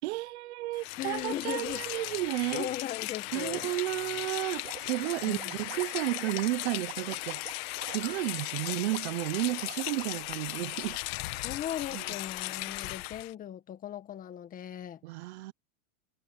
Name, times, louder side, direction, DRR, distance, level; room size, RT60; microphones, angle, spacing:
voice 1, 0.0-2.7 3.3-7.5 7.9-11.0 11.9-12.0 15.0-15.5, right 18 dB, 55° right, 0.8 m, -32 dB
Rain, 0.7-13.3, left 21 dB, 50° left, 1.3 m, -37 dB
voice 2, 1.0-1.9 2.5-3.7 5.2-5.5 11.4-15.0, left 11 dB, 20° left, 1.6 m, -38 dB
sound 1, 4.6-11.9, right 15 dB, 85° right, 2.6 m, -47 dB
supercardioid pair, 155°, 39 cm